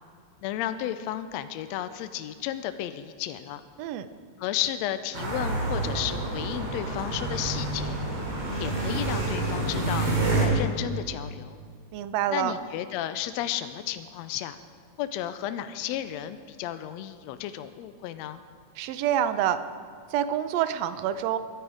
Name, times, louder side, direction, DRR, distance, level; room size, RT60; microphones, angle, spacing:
voice 1, 0.4-3.6 4.4-8.0 8.6-11.6 12.3-14.6 15.0-18.4, left 12 dB, 80° left, 11 dB, 1.7 m, -33 dB
sound 1, 5.1-10.5, right 2 dB, 55° right, 4.0 m, -28 dB
voice 2, 11.9-12.5 18.8-19.6 20.1-21.4, right 10 dB, 75° right, 12 dB, 1.6 m, -27 dB
22.5 x 10.5 x 5.0 m, 2.2 s
omnidirectional pair, 3.5 m